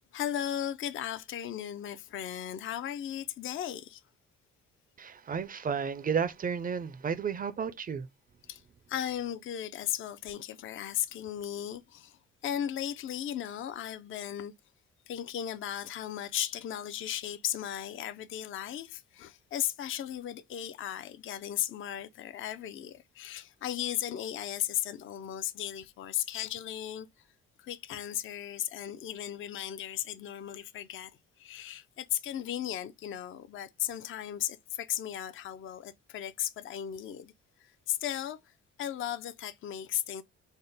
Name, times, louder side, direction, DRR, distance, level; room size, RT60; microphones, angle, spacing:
voice 1, 0.0-4.0 8.5-8.6 8.9-14.5 15.1-27.1 27.6-31.1 31.4-37.3 37.6-38.5 38.8-40.2, left 11 dB, 45° left, 0.4 m, -36 dB
voice 2, 5.0-8.1, right 6 dB, 30° right, 0.4 m, -32 dB
3.5 x 2.0 x 3.9 m
cardioid pair, 90°, 30 cm